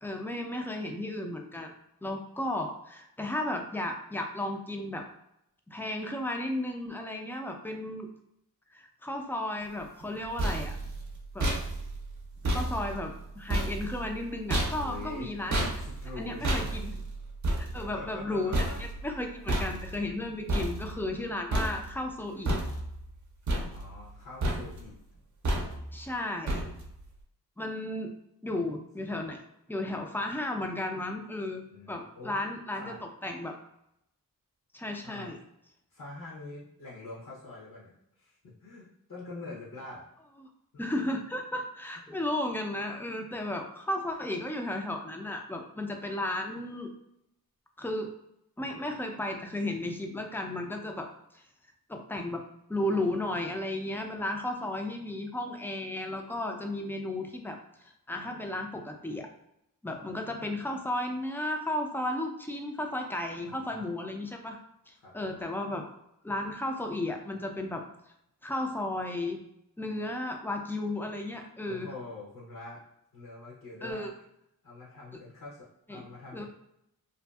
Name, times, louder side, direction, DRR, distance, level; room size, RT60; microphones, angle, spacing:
voice 1, 0.0-1.7 2.0-5.1 5.7-8.1 8.7-10.8 11.3-11.5 12.5-15.7 16.2-16.9 17.6-22.5 25.9-26.6 27.6-28.1 28.4-29.4 29.7-31.6 31.9-33.6 34.7-35.4 40.4-40.5 40.8-46.9 47.8-48.1 48.6-51.1 51.3-51.4 51.9-52.4 52.7-59.3 59.8-64.6 64.9-65.9 66.2-67.8 68.4-69.4 69.8-71.9 73.8-74.1 75.9-76.1 76.3-76.5, left 1 dB, 5° left, 3 dB, 0.3 m, -34 dB
sound 1, 10.0-21.2 21.5-22.1 22.5-23.1 23.5-24.2 24.4-24.9 25.4-26.0 26.5-27.0, right 1 dB, 55° right, 0.6 m, -32 dB
voice 2, 14.8-17.0 17.7-18.8 21.3-21.4 23.5-24.9 31.7-32.4 32.8-33.0 35.0-35.3 35.9-37.9 38.2-40.0 42.1-42.2 53.9-54.2 63.4-63.9 65.0-65.4 71.6-72.8 73.1-74.1 74.6-76.5, left 3 dB, 65° left, -5 dB, 0.7 m, -45 dB
2.6 x 2.3 x 2.2 m, 0.80 s
wide cardioid pair, 80°, 36 cm